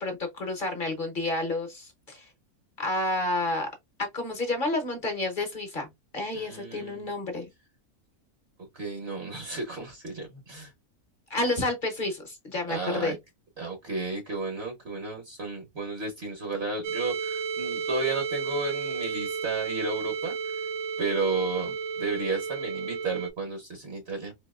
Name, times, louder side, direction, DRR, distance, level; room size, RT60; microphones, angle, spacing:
voice 1, 0.0-2.3 2.8-3.7 4.1-5.9 6.1-7.5 11.3-13.2, left 2 dB, 40° left, 0.8 m, -30 dB
voice 2, 6.3-7.1 8.7-10.7 12.7-13.2 13.6-20.4 21.0-24.3, right 3 dB, 50° right, 1.0 m, -33 dB
sound 1, 16.8-23.3, right 5 dB, 75° right, 1.1 m, -32 dB
4.1 x 2.7 x 2.3 m
omnidirectional pair, 1.6 m